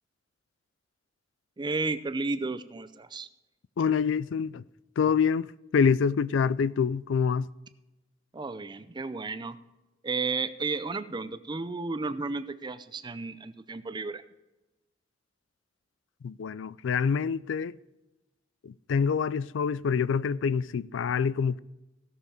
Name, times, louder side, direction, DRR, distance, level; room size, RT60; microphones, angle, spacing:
voice 1, 1.6-3.3 8.3-9.6 10.0-14.2, right 3 dB, 25° right, 0.5 m, -33 dB
voice 2, 3.8-4.6 5.0-7.5 16.2-17.8 18.6-21.6, left 6 dB, 80° left, 0.4 m, -26 dB
16.0 x 6.7 x 4.9 m
head